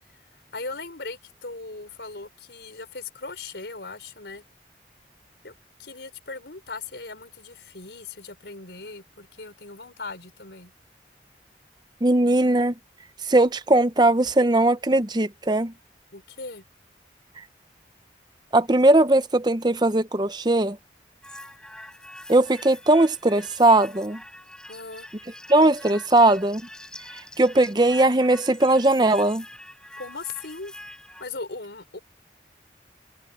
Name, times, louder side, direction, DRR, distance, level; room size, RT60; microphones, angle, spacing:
voice 1, 0.5-4.4 5.4-10.7 16.1-16.6 24.7-25.1 30.0-30.7 31.2-32.0, left 3 dB, 80° left, 4.1 m, -38 dB
voice 2, 12.0-12.7 13.2-15.7 18.5-20.8 22.3-24.2 25.5-26.6 27.4-29.4, right 2 dB, 25° right, 0.8 m, -19 dB
sound 1, 21.2-31.2, left 1 dB, 5° left, 5.9 m, -44 dB
head